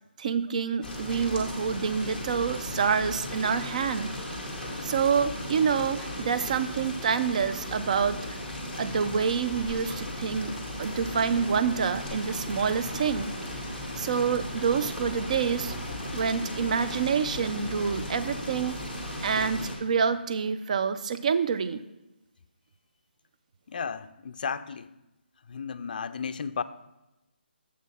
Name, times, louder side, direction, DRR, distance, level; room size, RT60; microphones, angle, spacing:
voice 1, 0.2-4.1 4.8-8.4 8.8-10.5 10.8-13.3 14.0-15.7 16.1-18.8 19.2-21.8, right 6 dB, 40° right, 12 dB, 0.4 m, -27 dB
sound 1, 0.8-19.8, left 1 dB, 5° right, 1.1 m, -36 dB
sound 2, 10.7-17.6, right 1 dB, 20° right, 1.2 m, -48 dB
voice 2, 23.7-24.9 25.5-26.6, left 6 dB, 50° left, 12 dB, 0.4 m, -34 dB
7.2 x 6.2 x 4.2 m, 0.95 s
hypercardioid pair, 160°, 6 cm